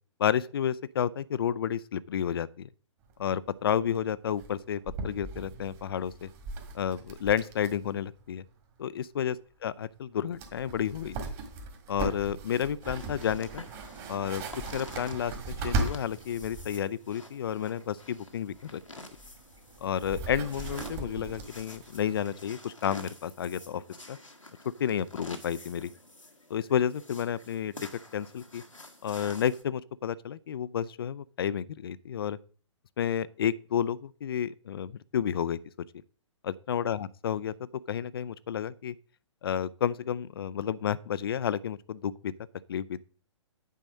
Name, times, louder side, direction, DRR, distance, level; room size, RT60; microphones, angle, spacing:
voice 1, 0.2-2.7 3.2-6.3 6.7-8.4 8.8-9.4 9.6-11.2 11.9-13.6 14.1-14.4 14.7-18.8 19.8-23.8 24.1-24.2 24.8-25.9 26.5-27.7 28.1-28.6 29.0-32.4 33.0-35.6 36.4-37.5 37.9-38.9 39.4-42.3 42.7-43.0, left 9 dB, 50° left, 0.5 m, -31 dB
sound 1, 3.1-3.2 3.4-3.5 3.8-4.0 4.4-7.9 8.2-8.3 10.0-10.1 10.3-16.7 18.5-22.2, right 2 dB, 30° right, 1.9 m, -38 dB
sound 2, 12.8-29.6, left 1 dB, 85° left, 1.4 m, -49 dB
9.2 x 4.2 x 6.3 m
figure-of-eight pair, 120°, 16 cm